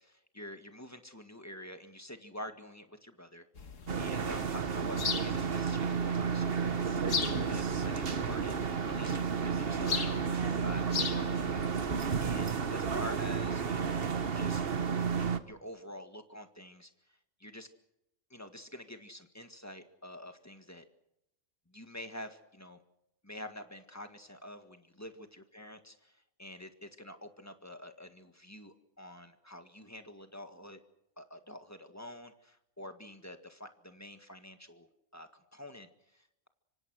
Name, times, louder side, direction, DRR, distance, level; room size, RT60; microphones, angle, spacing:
voice 1, 0.1-7.1 7.5-10.2 10.6-13.9 14.3-14.7 15.5-17.7 18.3-20.8 21.7-22.8 23.2-30.8 31.2-36.5, equal, 15° left, 7 dB, 1.8 m, -47 dB
sound 1, 3.6-12.5, left 5 dB, 85° left, 1.9 m, -40 dB
sound 2, 3.9-15.4, right 6 dB, 50° right, 1.4 m, -32 dB
25.5 x 25.0 x 6.4 m, 0.84 s
omnidirectional pair, 1.3 m